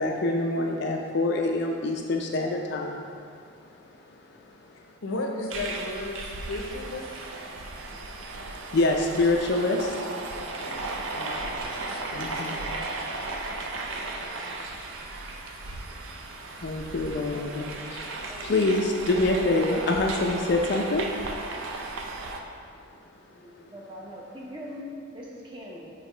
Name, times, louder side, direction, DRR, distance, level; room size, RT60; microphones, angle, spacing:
voice 1, 0.0-3.1 8.7-9.9 12.2-12.6 16.6-18.1 18.4-21.1, left 2 dB, 50° left, 1 dB, 0.4 m, -25 dB
voice 2, 5.0-7.2 10.4-10.8 11.1-11.6 11.9-12.6, left 2 dB, 80° left, 1 dB, 0.7 m, -35 dB
sound 1, 5.5-22.4, right 2 dB, 65° right, 0.5 m, -35 dB
voice 3, 18.3-18.7 23.3-25.9, left 1 dB, 25° right, -3 dB, 0.7 m, -42 dB
6.5 x 3.0 x 4.9 m, 2.3 s
head